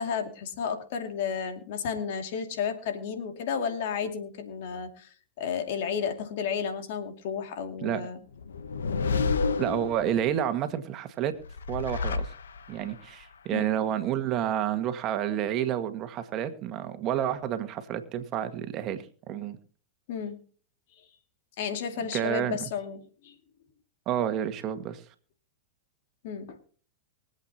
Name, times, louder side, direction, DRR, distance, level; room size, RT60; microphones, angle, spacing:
voice 1, 0.0-8.2 13.5-13.7 20.1-20.4 21.6-23.4 26.2-26.6, left 7 dB, 60° left, 6 dB, 2.5 m, -32 dB
sound 1, 8.4-10.4 11.4-12.9, left 4 dB, 85° left, 1.0 m, -30 dB
voice 2, 9.6-11.3 11.7-12.3 12.7-19.6 22.1-22.6 24.1-25.0, right 10 dB, 40° right, 8 dB, 1.7 m, -29 dB
24.0 x 8.3 x 2.9 m, 0.42 s
hypercardioid pair, 110°, 0 cm